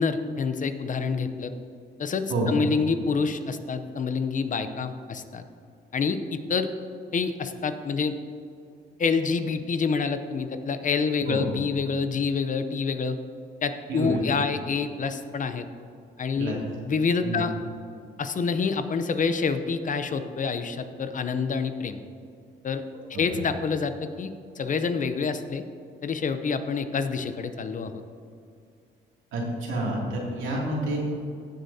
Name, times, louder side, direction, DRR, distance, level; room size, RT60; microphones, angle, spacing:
voice 1, 0.0-1.5 2.0-5.4 5.9-6.7 7.1-8.1 9.0-13.2 13.6-15.7 16.2-17.5 18.2-22.0 22.6-22.8 23.1-24.3 24.6-25.6 26.0-28.0, left 5 dB, 40° left, 9 dB, 0.7 m, -27 dB
voice 2, 13.9-14.2 16.4-16.6 17.2-17.4 23.3-23.4 29.3-31.0, right 1 dB, 80° right, -3 dB, 2.5 m, -28 dB
15.5 x 7.8 x 2.8 m, 2.4 s
cardioid pair, 90°, 20 cm